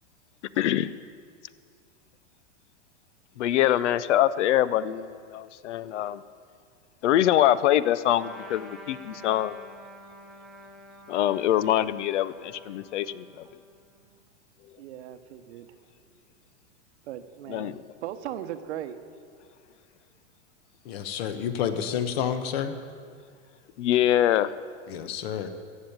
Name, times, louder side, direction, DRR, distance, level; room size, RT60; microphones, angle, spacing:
voice 1, 0.6-0.9 3.4-6.2 7.0-9.5 11.1-13.5 17.5-17.7 23.8-24.5, left 12 dB, 70° left, 17 dB, 0.6 m, -24 dB
Trumpet, 8.2-14.0, equal, ahead, 0.5 m, -48 dB
voice 2, 14.8-15.7 17.0-19.0, right 11 dB, 60° right, 10 dB, 1.0 m, -38 dB
voice 3, 20.8-22.8 24.9-25.5, left 8 dB, 50° left, 10 dB, 1.1 m, -29 dB
15.0 x 7.3 x 9.3 m, 2.1 s
supercardioid pair, 160°, 37 cm